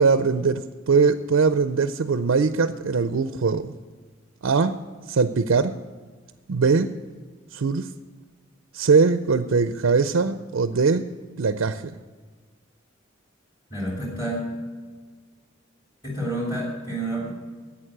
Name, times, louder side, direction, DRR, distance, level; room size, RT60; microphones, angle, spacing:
voice 1, 0.0-3.7 4.4-4.8 5.1-5.7 6.5-6.9 7.5-7.9 8.7-11.1 11.4-11.9, right 4 dB, 75° right, 11 dB, 0.5 m, -21 dB
voice 2, 13.7-14.5 16.0-17.3, right 1 dB, 20° left, -3 dB, 2.8 m, -29 dB
11.0 x 8.6 x 8.7 m, 1.5 s
head